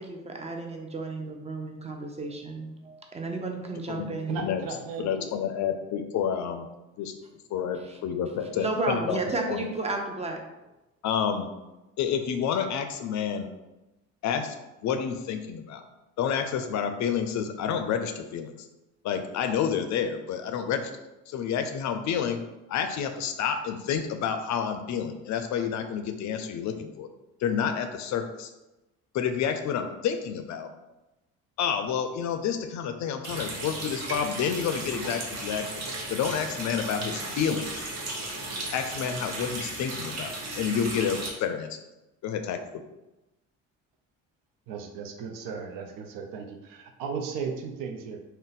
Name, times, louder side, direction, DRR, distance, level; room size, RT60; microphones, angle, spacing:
voice 1, 0.0-4.4 7.5-8.0 8.4-10.4, right 2 dB, 20° right, 2 dB, 0.5 m, -33 dB
voice 2, 4.3-5.3 44.7-48.2, right 5 dB, 80° right, 4 dB, 0.5 m, -36 dB
voice 3, 5.0-6.7 7.0-7.1 7.5-9.7 11.0-11.5 12.0-13.5 14.2-14.6 14.8-15.8 16.2-18.5 19.0-20.9 21.3-22.4 22.7-27.1 27.4-28.5 29.1-30.7 31.6-37.8 38.7-41.7 42.2-42.6, left 7 dB, 60° left, 7 dB, 0.4 m, -29 dB
Water tap faucet, 33.2-41.3, right 2 dB, 50° right, 0.8 m, -35 dB
2.5 x 2.1 x 3.8 m, 1.0 s
cardioid pair, 85°, 33 cm